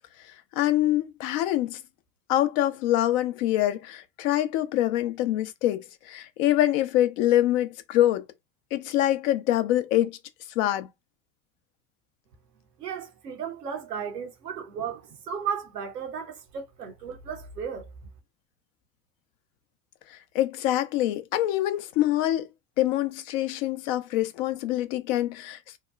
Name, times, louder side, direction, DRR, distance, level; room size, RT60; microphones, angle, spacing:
voice 1, 0.6-1.8 2.3-8.2 8.7-10.2 10.6-10.9 20.1-22.5 22.8-25.8, left 13 dB, 55° left, 0.6 m, -25 dB
voice 2, 12.8-15.0 15.3-17.9, right 7 dB, 85° right, 0.7 m, -34 dB
2.9 x 2.1 x 2.3 m
figure-of-eight pair, 70°, 47 cm